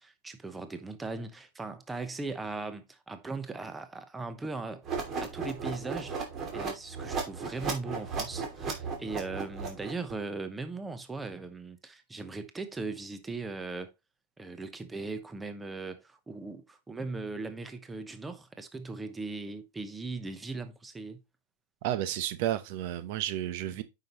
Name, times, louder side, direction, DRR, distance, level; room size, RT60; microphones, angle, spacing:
voice 1, 0.0-4.8 5.2-6.2 6.5-13.9 14.4-21.2 23.7-23.8, right 3 dB, 10° right, 1.0 m, -39 dB
sound 1, 4.8-10.1, right 5 dB, 30° right, 2.7 m, -35 dB
voice 2, 21.8-23.8, right 12 dB, 55° right, 0.9 m, -31 dB
8.7 x 5.8 x 3.0 m
hypercardioid pair, 135°, 0 cm